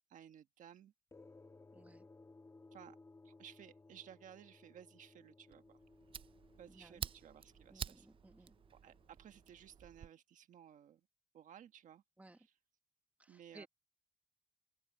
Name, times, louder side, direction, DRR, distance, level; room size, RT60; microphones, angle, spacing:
voice 1, 0.1-0.9 2.7-3.0 3.2-5.8 6.6-8.1 8.8-11.0 11.3-12.0 13.3-13.7, right 9 dB, 75° right, 1.5 m, -57 dB
sound 1, 1.1-9.9, left 3 dB, 20° left, 1.5 m, -62 dB
voice 2, 1.7-2.1 6.7-7.0 7.7-8.6 12.2-12.4 13.2-13.7, right 2 dB, 10° right, 1.4 m, -59 dB
Fire, 5.5-10.1, right 8 dB, 45° right, 0.4 m, -49 dB
open air
cardioid pair, 120°, 13 cm